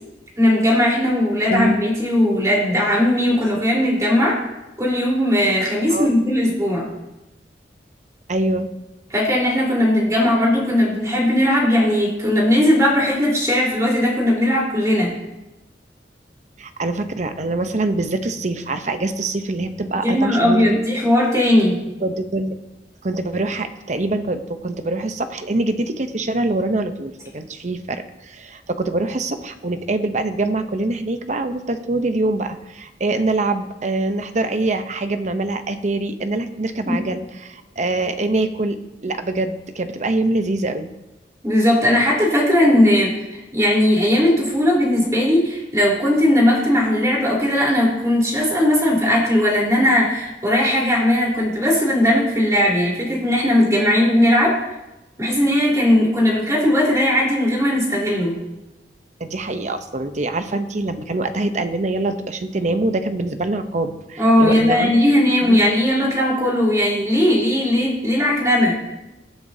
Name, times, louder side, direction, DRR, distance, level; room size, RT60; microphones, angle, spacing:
voice 1, 0.4-4.4 4.8-6.9 9.1-15.1 20.0-21.8 36.9-37.0 41.4-54.6 55.2-58.3 64.2-68.7, left 1 dB, 20° right, -4 dB, 3.9 m, -18 dB
voice 2, 8.3-8.7 16.6-20.8 22.0-22.6 23.0-40.9 59.2-64.9 65.4-65.7, right 2 dB, 40° right, 8 dB, 0.8 m, -24 dB
22.0 x 8.0 x 2.8 m, 1.0 s
head